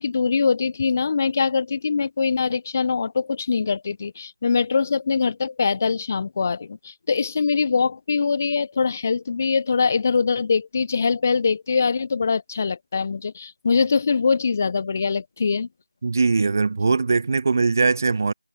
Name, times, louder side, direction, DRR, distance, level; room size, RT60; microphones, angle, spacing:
voice 1, 0.0-15.7, left 5 dB, 20° left, 2.2 m, -23 dB
voice 2, 16.0-18.3, right 4 dB, 25° right, 2.0 m, -20 dB
figure-of-eight pair, 170°, 3 cm